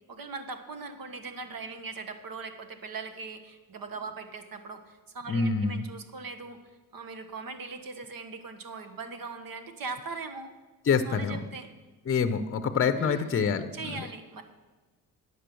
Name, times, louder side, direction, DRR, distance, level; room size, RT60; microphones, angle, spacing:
voice 1, 0.1-6.6 6.9-10.5 11.1-11.7 13.0-13.3 13.7-14.4, right 4 dB, 60° right, 8 dB, 1.2 m, -40 dB
voice 2, 5.3-5.8 10.9-11.5 12.1-14.1, left 5 dB, 35° left, 10 dB, 0.7 m, -26 dB
9.6 x 7.6 x 6.9 m, 1.2 s
cardioid pair, 80°, 39 cm